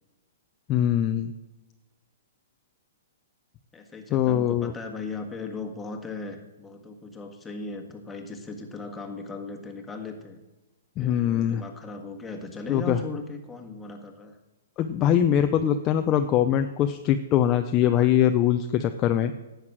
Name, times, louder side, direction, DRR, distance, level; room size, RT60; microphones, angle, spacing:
voice 1, 0.7-1.3 4.1-4.7 11.0-11.6 12.7-13.0 14.8-19.3, left 10 dB, 30° left, 7 dB, 0.6 m, -22 dB
voice 2, 3.7-10.4 11.0-14.4, left 3 dB, 10° left, 2 dB, 1.7 m, -37 dB
11.0 x 8.1 x 6.1 m, 1.1 s
hypercardioid pair, 140°, 0 cm